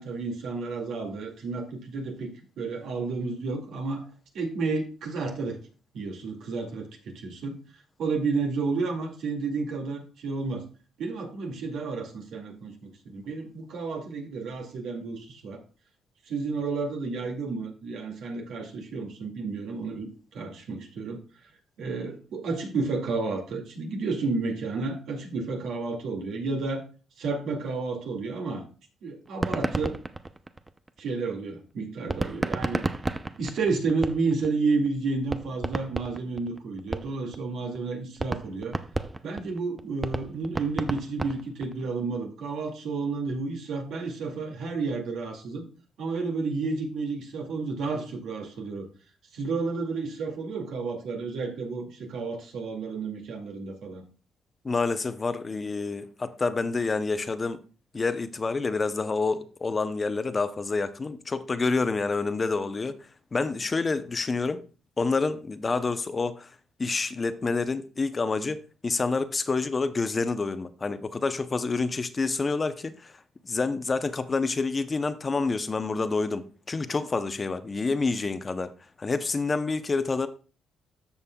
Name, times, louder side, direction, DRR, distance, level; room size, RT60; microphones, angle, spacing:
voice 1, 0.0-4.0 4.3-5.6 5.9-7.6 8.0-10.6 11.0-15.6 16.3-21.2 21.8-26.8 27.2-28.6 29.0-30.0 31.0-32.8 33.4-38.8 39.2-45.7 46.0-48.9 49.3-54.0, right 4 dB, 75° right, 2.1 m, -31 dB
sound 1, 29.3-31.1 32.1-34.5 34.9-35.0 35.3-37.4 37.7-37.8 38.2-41.8, right 2 dB, 20° right, 0.5 m, -31 dB
voice 2, 54.6-57.6 57.9-63.0 63.3-64.6 65.0-66.5 66.8-73.1 73.4-78.7 79.0-80.3, left 4 dB, 30° left, 0.6 m, -28 dB
14.0 x 5.4 x 2.2 m
cardioid pair, 90°, 0 cm